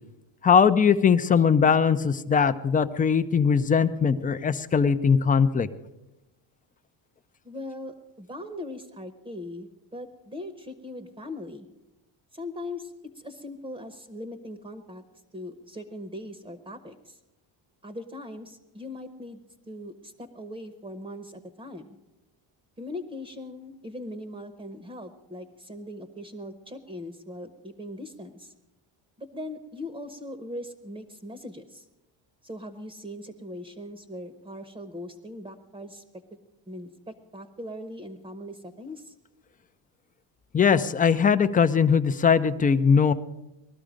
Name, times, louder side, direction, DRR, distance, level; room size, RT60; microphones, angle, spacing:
voice 1, 0.4-5.7 40.5-43.1, left 6 dB, 20° left, 11 dB, 0.4 m, -20 dB
voice 2, 7.4-11.7 12.3-15.0 15.3-17.2 17.8-19.4 19.7-22.0 22.8-28.5 29.2-31.8 32.4-36.0 36.7-39.1, left 1 dB, 15° right, 9 dB, 0.9 m, -40 dB
20.0 x 13.0 x 5.1 m, 0.96 s
cardioid pair, 145°, 45 cm